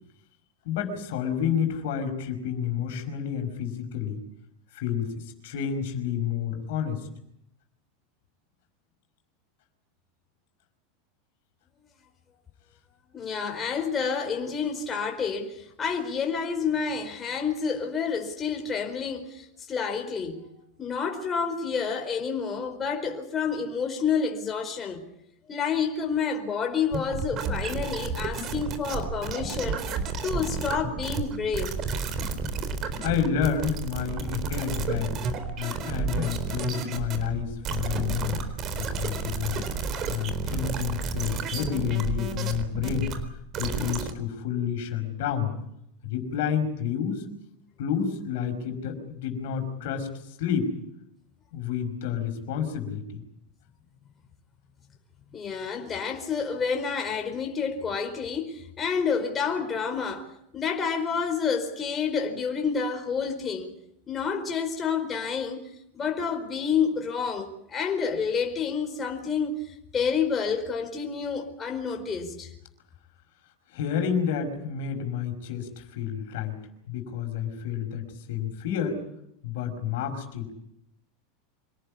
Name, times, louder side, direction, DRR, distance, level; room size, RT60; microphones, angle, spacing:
voice 1, 0.6-4.2 4.7-7.1 33.0-35.2 35.6-39.6 40.1-43.2 43.6-45.5 46.0-47.3 47.8-50.7 51.5-53.2 73.7-76.6 76.9-79.0 79.4-80.5, left 8 dB, 70° left, 5.3 m, -30 dB
voice 2, 13.1-25.1 25.5-29.8 30.2-31.7 55.3-60.3 60.5-63.7 64.1-65.6 65.9-69.6 69.9-72.5, left 6 dB, 25° left, 4.6 m, -29 dB
sound 1, 26.9-44.1, right 4 dB, 40° right, 4.0 m, -31 dB
26.0 x 18.5 x 8.5 m
hypercardioid pair, 90°, 0 cm